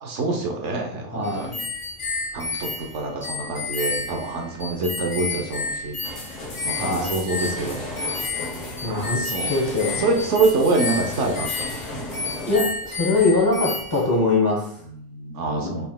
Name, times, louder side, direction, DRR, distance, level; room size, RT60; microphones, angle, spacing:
voice 1, 0.0-1.6 2.3-6.0 6.6-8.0 8.8-9.6 10.0-11.8 14.8-15.9, right 3 dB, 65° right, 2 dB, 1.0 m, -26 dB
voice 2, 1.1-1.5 6.8-7.1 8.8-9.2 9.5-10.0 12.4-14.7 15.6-15.7, left 3 dB, 20° left, -3 dB, 1.0 m, -22 dB
sound 1, 1.2-14.2, left 3 dB, 40° left, 0.4 m, -31 dB
sound 2, 6.0-12.6, left 2 dB, 75° left, 1.5 m, -35 dB
5.4 x 4.3 x 2.2 m, 0.64 s
omnidirectional pair, 1.3 m